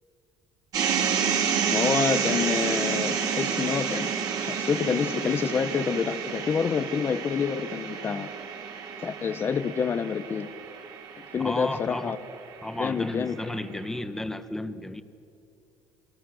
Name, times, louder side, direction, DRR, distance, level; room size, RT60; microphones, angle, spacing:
sound 1, 0.7-12.9, right 7 dB, 50° right, 3.4 m, -30 dB
voice 1, 1.7-4.1 4.4-8.3 9.0-10.5 11.3-12.2 12.8-13.8, left 6 dB, 30° left, 9 dB, 0.8 m, -28 dB
voice 2, 11.4-12.1 12.6-15.0, left 1 dB, 5° left, 11 dB, 1.0 m, -33 dB
28.5 x 26.5 x 6.3 m, 2.8 s
cardioid pair, 155°, 8 cm